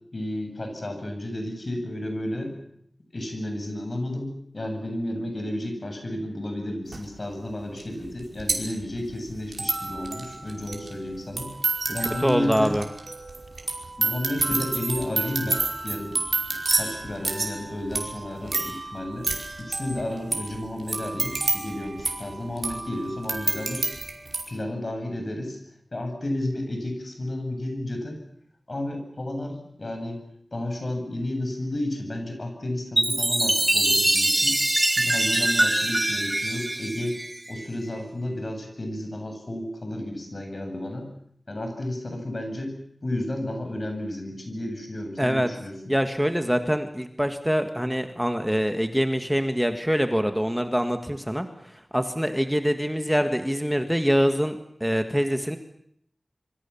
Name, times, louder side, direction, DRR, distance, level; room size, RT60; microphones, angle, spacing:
voice 1, 0.1-2.5 3.1-11.5 11.9-12.7 14.0-16.2 16.5-19.3 19.6-23.9 24.5-25.6 25.9-28.2 28.7-30.2 30.5-34.6 34.9-37.2 37.5-41.1 41.5-42.7 43.0-46.0, left 1 dB, 50° left, 5 dB, 7.9 m, -32 dB
sound 1, 6.9-7.0 7.8-7.9 8.1-24.4, right 3 dB, 70° right, 5.4 m, -29 dB
voice 2, 12.2-12.8 45.2-45.5 45.9-55.6, equal, 5° right, 7 dB, 1.7 m, -24 dB
Chime, 33.0-37.6, right 1 dB, 25° right, 1.0 m, -23 dB
26.5 x 24.5 x 7.2 m, 0.71 s
wide cardioid pair, 70°, 0 cm